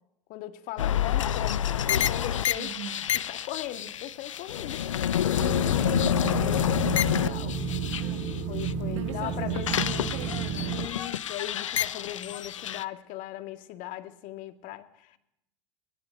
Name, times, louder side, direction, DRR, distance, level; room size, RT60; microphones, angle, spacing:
voice 1, 0.3-2.7 3.1-4.8 5.4-7.5 8.5-10.1 10.7-15.2, left 13 dB, 60° left, 10 dB, 2.1 m, -39 dB
sound 1, 0.8-8.7 9.1-12.8, left 10 dB, 90° left, 0.8 m, -28 dB
voice 2, 2.6-3.0 3.8-3.9 4.7-5.0 7.1-7.6 8.0-8.3 8.9-10.9, right 9 dB, 80° right, 7 dB, 2.4 m, -41 dB
sound 2, 5.4-10.9, right 6 dB, 60° right, 6.7 m, -32 dB
20.5 x 15.5 x 8.4 m, 0.77 s
hypercardioid pair, 85°, 16 cm